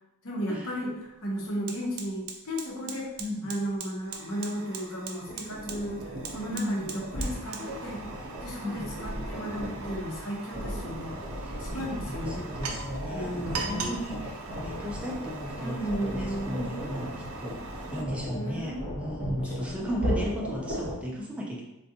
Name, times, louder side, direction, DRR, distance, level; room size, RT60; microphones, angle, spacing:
voice 1, 0.2-3.1 3.4-8.0 8.4-11.1 11.6-12.4 13.1-14.0 15.6-16.6 18.3-18.8 19.2-20.2, equal, 65° left, -1 dB, 0.8 m, -35 dB
Fire, 0.5-0.7 1.0-18.0, right 4 dB, 75° right, 0.4 m, -41 dB
voice 2, 3.2-3.6 6.5-6.9 8.6-9.0 11.4-17.7 17.9-21.6, equal, 5° right, -2 dB, 0.3 m, -35 dB
sound 1, 5.3-21.0, equal, 55° right, 0.9 m, -37 dB
3.6 x 2.2 x 2.7 m, 0.94 s
head